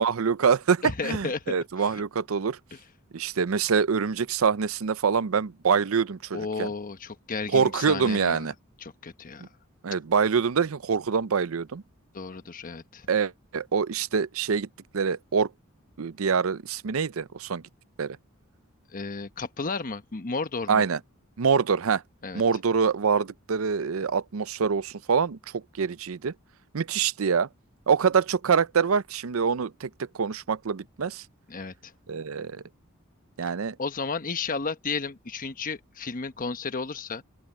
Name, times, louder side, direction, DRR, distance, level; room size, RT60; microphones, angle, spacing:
voice 1, 0.0-2.6 3.1-6.7 7.5-8.5 9.4-9.5 9.8-11.8 13.1-14.7 14.9-15.5 16.0-17.6 18.0-18.2 20.7-21.0 21.4-22.0 22.3-26.3 26.7-27.5 27.9-29.9 30.1-31.2 32.1-32.6 33.4-33.8, right 6 dB, 90° right, 0.6 m, -25 dB
voice 2, 0.8-2.0 2.7-2.8 6.3-8.5 8.8-9.5 12.1-13.1 18.9-20.8 22.2-22.4 31.5-31.9 33.8-37.2, left 4 dB, 40° left, 1.1 m, -33 dB
open air
head